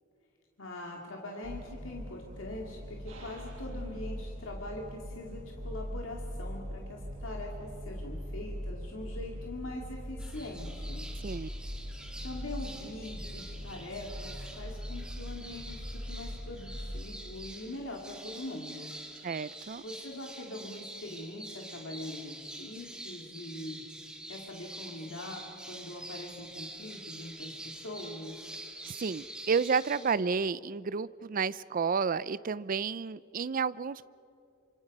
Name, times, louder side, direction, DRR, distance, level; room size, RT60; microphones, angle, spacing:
voice 1, 0.6-11.1 12.2-18.9 19.8-23.8 24.3-28.4, left 1 dB, 75° left, 0 dB, 2.4 m, -42 dB
sound 1, 1.4-17.0, equal, 70° right, 6.6 m, -41 dB
sound 2, 10.2-30.2, right 1 dB, 5° right, 2.1 m, -46 dB
voice 2, 19.2-19.8 28.8-34.1, right 5 dB, 45° right, 18 dB, 0.5 m, -31 dB
28.0 x 26.0 x 5.4 m, 2.5 s
head